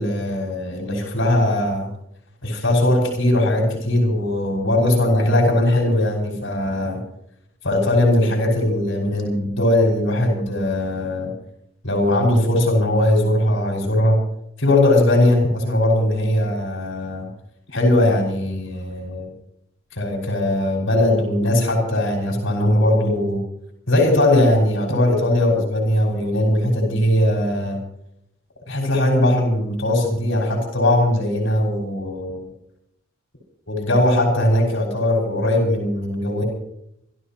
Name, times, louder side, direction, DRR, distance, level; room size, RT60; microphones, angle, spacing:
voice 1, 0.0-1.9 2.4-7.0 7.6-11.3 11.8-14.2 14.6-17.3 17.7-19.3 19.9-23.4 23.9-27.8 28.7-32.4 33.7-36.4, left 1 dB, 85° left, 1 dB, 5.7 m, -19 dB
26.5 x 14.5 x 3.0 m, 0.76 s
head